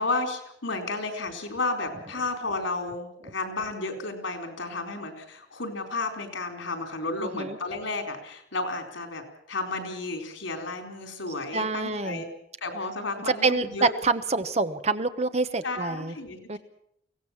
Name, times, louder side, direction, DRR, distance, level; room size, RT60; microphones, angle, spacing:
voice 1, 0.0-12.3 12.6-13.9 15.6-16.6, left 3 dB, 90° left, 6 dB, 4.3 m, -32 dB
voice 2, 7.2-7.6 11.5-12.2 13.4-16.1 16.5-16.6, right 3 dB, 35° right, 10 dB, 1.0 m, -26 dB
23.5 x 17.0 x 7.4 m, 0.72 s
head